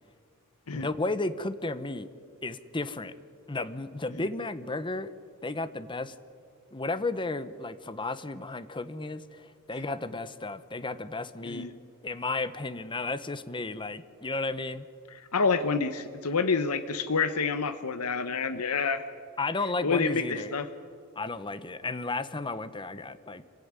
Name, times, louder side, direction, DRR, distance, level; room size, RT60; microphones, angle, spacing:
voice 1, 0.7-2.1 2.4-3.1 3.5-5.1 5.4-6.1 6.7-11.7 12.0-14.9 19.4-20.5 21.2-23.4, left 3 dB, 20° left, 14 dB, 0.9 m, -33 dB
voice 2, 15.1-19.0 19.8-20.7, left 5 dB, 80° left, 10 dB, 1.0 m, -28 dB
26.0 x 16.5 x 9.7 m, 2.3 s
head